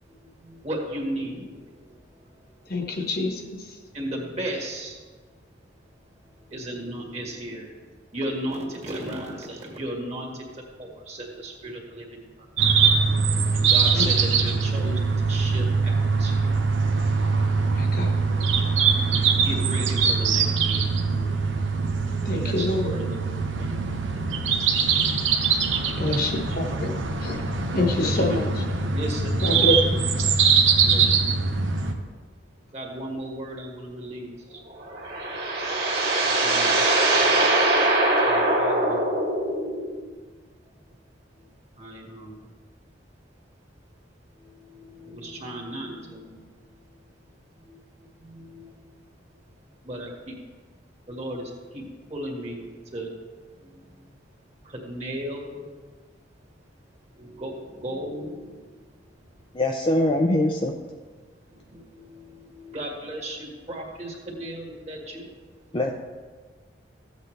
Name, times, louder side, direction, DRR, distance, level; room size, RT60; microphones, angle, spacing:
voice 1, 0.6-1.6 3.9-4.9 6.5-7.6 8.1-10.3 10.8-12.0 13.5-15.9 16.2-16.3 19.4-20.8 21.2-21.3 22.3-23.3 24.3-24.4 25.7-26.3 27.7-28.4 28.9-29.4 30.9-31.2 32.7-34.3 36.1-36.9 37.3-38.0 38.6-38.9 41.8-42.3 44.6-46.4 47.7-47.8 48.2-48.7 49.8-50.1 51.1-51.4 51.7-51.8 52.1-53.1 54.8-55.6 57.2-58.5 61.7-65.2, right 1 dB, 35° right, -1 dB, 1.8 m, -35 dB
voice 2, 2.7-3.8 13.9-14.3 17.7-18.1 22.2-23.0 26.0-26.9 27.2-27.4 27.7-28.6 29.4-30.2, left 1 dB, 50° left, 2 dB, 1.3 m, -27 dB
sound 1, 12.6-31.9, right 5 dB, 85° right, 0.9 m, -22 dB
sound 2, 34.8-39.9, right 2 dB, 55° right, 2.2 m, -22 dB
voice 3, 59.5-60.7 65.7-65.9, left 1 dB, 25° left, 1 dB, 0.5 m, -22 dB
14.5 x 8.1 x 3.3 m, 1.4 s
head